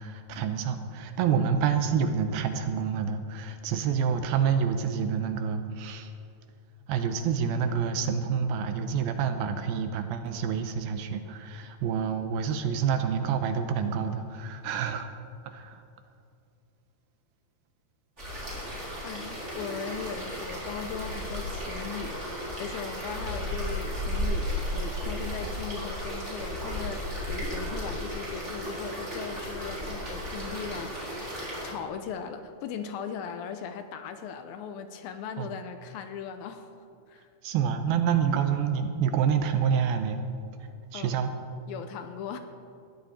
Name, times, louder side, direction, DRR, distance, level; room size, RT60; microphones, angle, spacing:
voice 1, 0.0-6.1 6.9-15.1 15.5-15.8 35.4-35.6 37.4-40.2 40.9-41.3, right 7 dB, 80° right, 8 dB, 2.5 m, -28 dB
sound 1, 18.2-31.7, equal, 15° right, 3.9 m, -34 dB
voice 2, 19.0-31.2 31.6-36.7 37.1-37.2 40.9-41.2 41.7-42.4, left 7 dB, 75° left, 8 dB, 2.4 m, -38 dB
20.0 x 14.0 x 4.3 m, 2.5 s
omnidirectional pair, 4.6 m